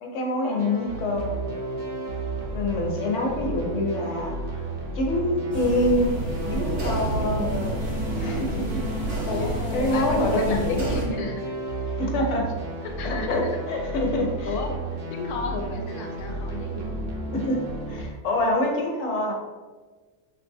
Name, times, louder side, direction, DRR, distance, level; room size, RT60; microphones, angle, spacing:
voice 1, 0.0-1.4 2.5-4.7 4.9-6.1 6.5-7.4 8.1-8.9 9.4-11.0 12.0-12.5 13.0-14.5 17.3-19.3, left 1 dB, 65° left, 0 dB, 0.8 m, -26 dB
sound 1, 0.6-18.0, right 2 dB, 65° right, 0.5 m, -33 dB
sound 2, 5.5-11.1, right 1 dB, 40° right, 0.9 m, -29 dB
voice 2, 7.4-8.0 9.2-11.5 12.8-13.5 14.4-14.7 15.1-16.9, left 3 dB, 85° left, 3 dB, 1.1 m, -33 dB
3.4 x 2.6 x 2.6 m, 1.4 s
omnidirectional pair, 1.5 m